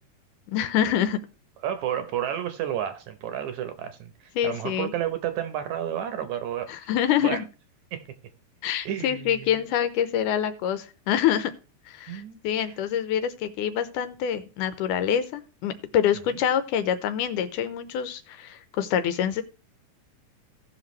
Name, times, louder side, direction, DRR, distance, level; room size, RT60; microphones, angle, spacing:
voice 1, 0.5-1.2 4.4-4.9 6.7-7.5 8.6-11.5 11.9-19.4, left 9 dB, 80° left, 2.2 m, -26 dB
voice 2, 1.6-4.1 4.4-6.8 7.2-7.4 7.9-8.1 8.9-9.6 12.1-12.7, right 10 dB, 70° right, 2.0 m, -31 dB
17.0 x 5.9 x 3.1 m
omnidirectional pair, 3.8 m